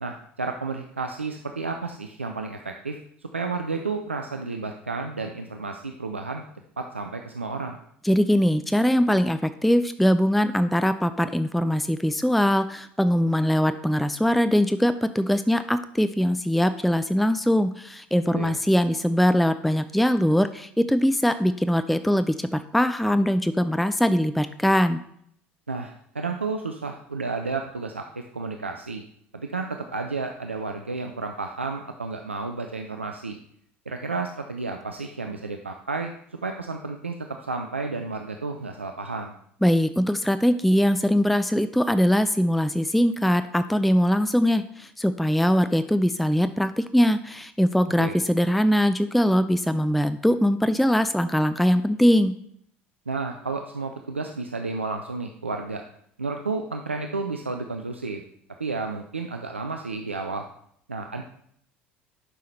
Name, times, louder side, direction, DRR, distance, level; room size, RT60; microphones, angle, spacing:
voice 1, 0.0-6.4 6.8-7.8 18.3-18.6 25.7-29.0 29.3-33.4 33.9-36.1 36.4-37.1 37.4-39.3 48.0-48.1 53.1-55.8 56.2-58.2 58.6-60.4 60.9-61.2, right 3 dB, 85° right, 4 dB, 0.4 m, -31 dB
voice 2, 8.0-25.0 39.6-52.3, equal, ahead, 11 dB, 0.4 m, -22 dB
11.0 x 5.6 x 3.2 m, 0.68 s
figure-of-eight pair, 65°, 6 cm